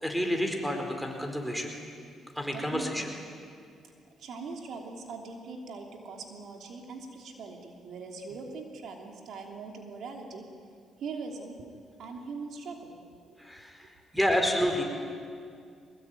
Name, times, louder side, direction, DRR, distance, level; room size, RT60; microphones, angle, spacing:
voice 1, 0.0-1.7 2.4-3.0 13.4-13.9 14.1-14.8, equal, ahead, 3 dB, 4.4 m, -29 dB
voice 2, 2.5-3.2 4.2-10.5 11.0-13.0 13.2-13.4, right 4 dB, 70° right, 2 dB, 3.1 m, -41 dB
23.0 x 20.0 x 9.2 m, 2.3 s
cardioid pair, 90°, 0 cm